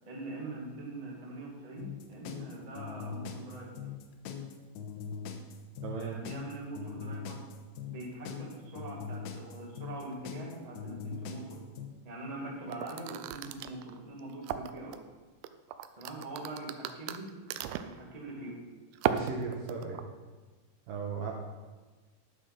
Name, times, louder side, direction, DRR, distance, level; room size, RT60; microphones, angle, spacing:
voice 1, 0.0-3.7 5.9-7.4 7.9-11.6 12.0-14.9 16.0-17.3 17.8-18.5, right 2 dB, 25° right, -3 dB, 0.8 m, -43 dB
sound 1, 1.8-11.9, left 7 dB, 85° left, 3.1 m, -41 dB
voice 2, 5.8-6.2 19.1-20.0 20.9-21.3, right 5 dB, 70° right, 0 dB, 2.3 m, -36 dB
sound 2, 12.7-15.0 15.4-18.0 18.9-20.0, right 10 dB, 85° right, 2.1 m, -35 dB
12.0 x 6.5 x 6.0 m, 1.3 s
omnidirectional pair, 4.9 m